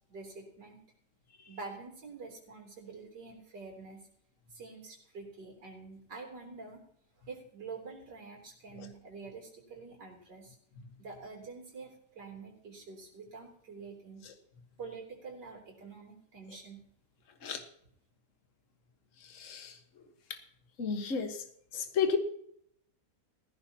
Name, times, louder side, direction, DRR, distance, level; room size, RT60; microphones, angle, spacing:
voice 1, 0.1-0.8 1.5-4.1 4.5-6.8 7.3-10.6 11.0-14.3 14.8-16.8, right 4 dB, 80° right, 0 dB, 4.1 m, -47 dB
voice 2, 19.3-19.8 20.8-21.4 21.7-22.2, left 6 dB, 50° left, 6 dB, 1.7 m, -32 dB
19.0 x 15.5 x 2.9 m, 0.68 s
omnidirectional pair, 1.8 m